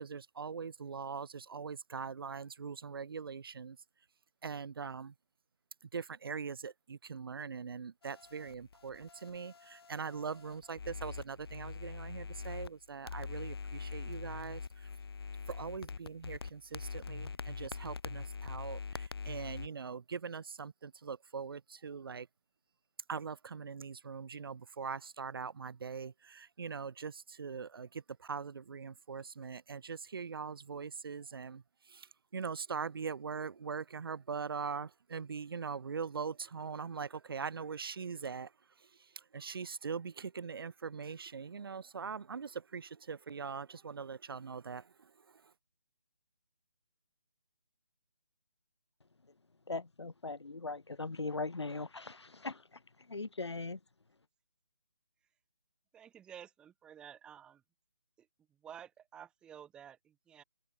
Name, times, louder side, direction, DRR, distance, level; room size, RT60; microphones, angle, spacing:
voice 1, 0.0-3.8 4.4-5.1 5.8-14.9 15.5-22.3 23.1-45.5, right 5 dB, 60° right, 0.8 m, -42 dB
sound 1, 8.0-12.7 13.1-19.7, left 5 dB, 65° left, 1.0 m, -44 dB
voice 2, 49.7-52.8 53.1-53.8, left 3 dB, 85° left, 1.6 m, -39 dB
voice 3, 55.9-57.6 58.2-58.3 58.6-60.4, right 9 dB, 5° right, 0.8 m, -52 dB
figure-of-eight pair, 155°, 14 cm